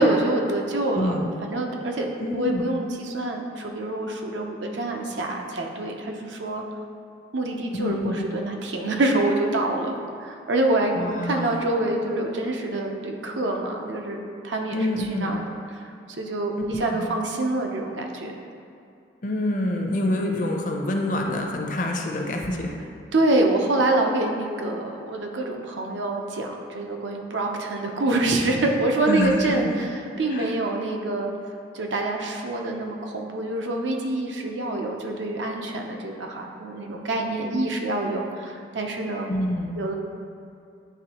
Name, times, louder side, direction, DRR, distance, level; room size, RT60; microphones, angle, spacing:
voice 1, 0.0-2.1 2.3-6.6 7.3-10.9 11.2-18.3 23.1-29.9 30.2-31.3 31.7-39.3 39.7-39.9, right 2 dB, 90° right, 2 dB, 0.7 m, -26 dB
voice 2, 0.9-1.3 2.2-2.7 7.7-8.3 11.0-11.6 14.7-15.4 16.7-17.1 19.2-22.8 29.0-29.7 30.2-30.5 39.3-39.7, left 1 dB, 45° left, 2 dB, 0.6 m, -27 dB
9.3 x 3.5 x 2.9 m, 2.5 s
head